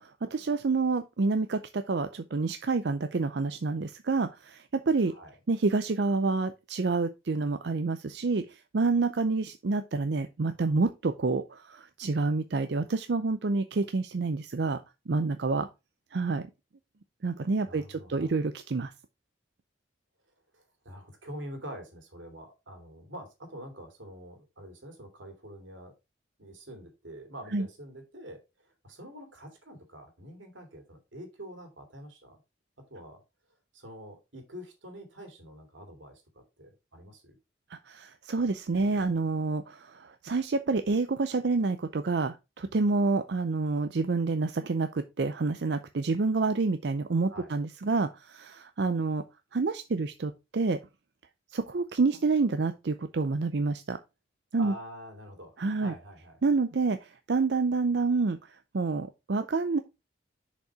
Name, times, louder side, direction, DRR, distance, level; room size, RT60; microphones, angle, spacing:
voice 1, 0.0-5.1 5.5-15.7 16.1-16.5 17.2-18.9 27.5-27.7 37.7-49.2 49.5-50.8 51.5-54.0 54.5-54.7 55.6-55.9 56.4-59.8, right 3 dB, 60° right, 0.5 m, -28 dB
voice 2, 17.7-18.4 20.5-25.9 26.4-32.4 32.9-33.2 33.7-36.2 36.6-37.3 47.2-47.5 54.6-56.4, right 1 dB, 90° right, 2.7 m, -46 dB
6.6 x 5.2 x 4.6 m
head